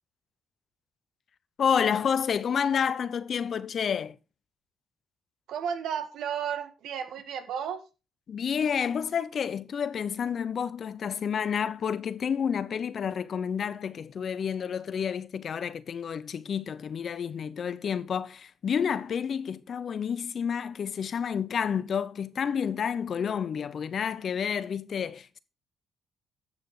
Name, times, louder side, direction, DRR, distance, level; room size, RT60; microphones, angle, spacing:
voice 1, 1.6-4.2 8.3-25.4, left 7 dB, 55° left, 0.8 m, -29 dB
voice 2, 5.5-7.8, right 8 dB, 80° right, 1.6 m, -33 dB
10.5 x 6.7 x 4.9 m
cardioid pair, 90°, 0 cm